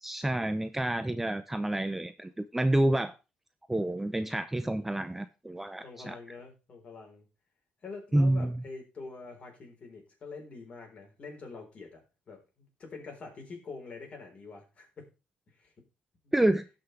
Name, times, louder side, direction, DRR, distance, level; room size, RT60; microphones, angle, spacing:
voice 1, 0.0-3.1 3.7-6.2 8.1-8.6 16.3-16.6, right 1 dB, 10° right, 11 dB, 0.6 m, -28 dB
voice 2, 5.8-7.2 7.8-12.0 12.3-15.1 15.6-15.7, left 4 dB, 45° left, 1 dB, 4.2 m, -45 dB
17.5 x 5.8 x 3.3 m, 0.29 s
cardioid pair, 110°, 3 cm